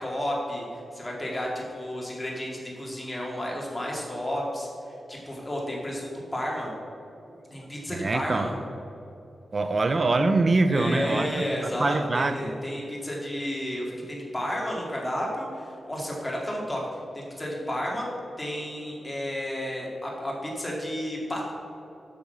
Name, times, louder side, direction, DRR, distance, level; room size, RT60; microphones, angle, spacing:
voice 1, 0.0-4.7 5.1-6.7 7.5-8.5 10.7-16.8 17.1-18.1 18.4-21.5, equal, 15° left, -3 dB, 2.2 m, -32 dB
voice 2, 7.9-8.5 9.5-12.5, right 3 dB, 40° right, 8 dB, 0.6 m, -24 dB
8.6 x 6.0 x 5.5 m, 2.8 s
wide cardioid pair, 100°, 0 cm